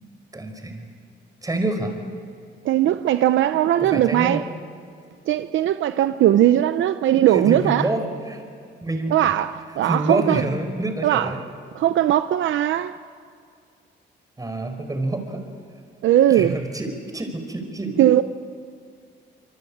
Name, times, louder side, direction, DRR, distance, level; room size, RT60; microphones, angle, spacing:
voice 1, 0.3-0.9 1.4-2.0 3.8-4.4 7.3-8.4 8.8-9.2 9.8-11.4 14.4-15.4 16.3-18.0, right 2 dB, 20° right, 5.0 m, -27 dB
voice 2, 2.6-4.4 5.3-7.9 9.1-10.4 11.0-11.3 11.7-13.0 16.0-16.6 18.0-18.2, right 12 dB, 75° right, 0.7 m, -19 dB
26.0 x 24.5 x 8.7 m
cardioid pair, 90°, 20 cm